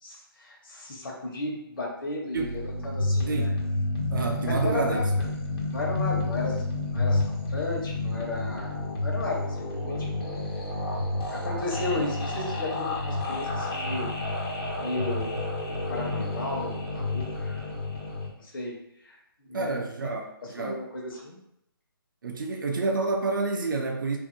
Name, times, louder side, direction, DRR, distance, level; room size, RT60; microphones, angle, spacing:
voice 1, 0.0-3.5 4.4-5.0 5.7-8.7 9.0-10.4 11.3-14.1 14.8-15.4 15.9-17.7 18.3-18.7 19.0-20.1 20.4-21.4, left 2 dB, 60° left, -2 dB, 1.0 m, -34 dB
sound 1, 2.4-18.3, left 2 dB, 85° left, 1.1 m, -30 dB
voice 2, 3.3-3.6 4.1-5.1 19.5-20.9 22.2-24.2, right 3 dB, 55° right, 3 dB, 0.5 m, -29 dB
2.6 x 2.5 x 2.6 m, 0.79 s
hypercardioid pair, 170°, 13 cm